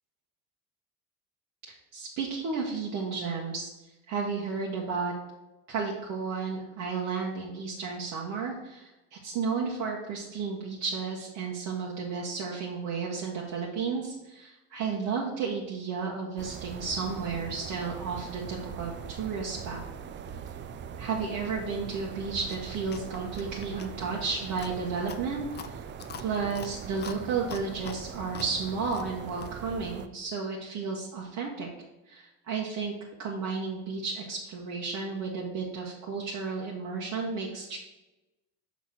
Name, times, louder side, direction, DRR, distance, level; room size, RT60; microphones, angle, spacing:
voice 1, 1.9-3.7 4.1-5.1 5.7-19.8 21.0-25.8 26.2-31.7 32.1-32.9 33.2-37.8, right 5 dB, 60° right, -3 dB, 1.3 m, -33 dB
sound 1, 16.4-30.1, right 7 dB, 35° right, 0.4 m, -41 dB
Chewing mastication, 22.4-29.6, left 8 dB, 30° left, 0.5 m, -46 dB
6.0 x 4.2 x 6.0 m, 1.0 s
cardioid pair, 120°, 34 cm